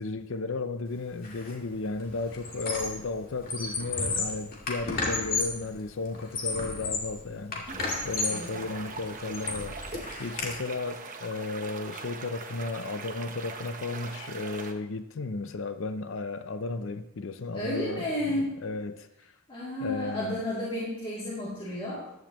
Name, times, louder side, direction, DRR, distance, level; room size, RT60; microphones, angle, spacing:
voice 1, 0.0-7.6 8.0-9.8 10.2-19.1 19.8-20.4, left 3 dB, 60° left, 0.6 m, -34 dB
Squeak, 1.2-1.5 1.8-3.1 3.4-5.6 6.1-7.2 7.5-8.5 8.9-10.5, left 3 dB, 40° left, 2.3 m, -32 dB
sound 1, 7.7-14.7, right 4 dB, 40° right, 1.0 m, -41 dB
voice 2, 17.5-18.6 19.5-22.0, left 1 dB, 25° left, 2.7 m, -32 dB
14.5 x 11.5 x 3.0 m
head